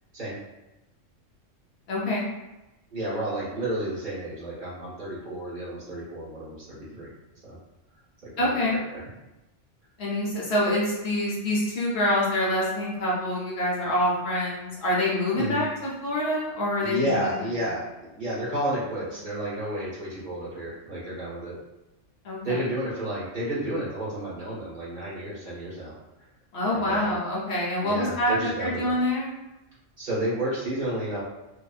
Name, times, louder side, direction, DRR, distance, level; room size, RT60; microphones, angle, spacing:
voice 1, 1.9-2.3 8.4-8.8 10.0-17.3 22.2-22.6 26.5-29.3, left 1 dB, 60° left, -5 dB, 1.0 m, -26 dB
voice 2, 2.9-7.1 7.4-7.6 8.2-9.0 15.3-15.6 16.8-21.6 22.4-25.9 26.7-27.2 27.8-29.0 30.0-31.2, right 1 dB, 40° right, -9 dB, 1.3 m, -31 dB
2.8 x 2.6 x 2.4 m, 1.0 s
omnidirectional pair, 1.3 m